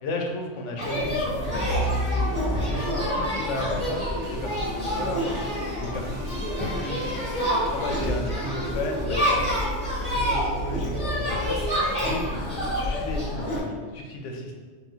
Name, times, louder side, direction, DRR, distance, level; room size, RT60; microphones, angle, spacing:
voice 1, 0.0-5.4 5.8-7.2 7.7-14.5, left 2 dB, 80° left, 1 dB, 1.0 m, -34 dB
sound 1, 0.8-13.6, equal, 25° left, 1.7 m, -27 dB
sound 2, 1.0-13.2, left 1 dB, 45° left, 1.8 m, -38 dB
sound 3, 1.2-8.1, left 1 dB, 75° right, 1.1 m, -41 dB
5.9 x 2.2 x 2.7 m, 1.5 s
omnidirectional pair, 1.2 m